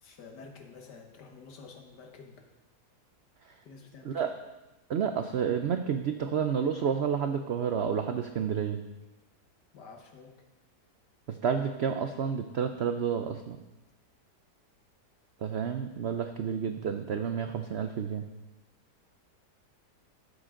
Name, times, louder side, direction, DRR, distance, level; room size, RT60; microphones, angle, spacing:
voice 1, 0.0-2.4 3.7-4.3 9.7-10.4, left 4 dB, 90° left, 4 dB, 1.8 m, -49 dB
voice 2, 4.9-8.8 11.3-13.6 15.4-18.2, right 7 dB, 80° right, 7 dB, 0.5 m, -30 dB
13.0 x 8.3 x 3.7 m, 1.0 s
omnidirectional pair, 1.8 m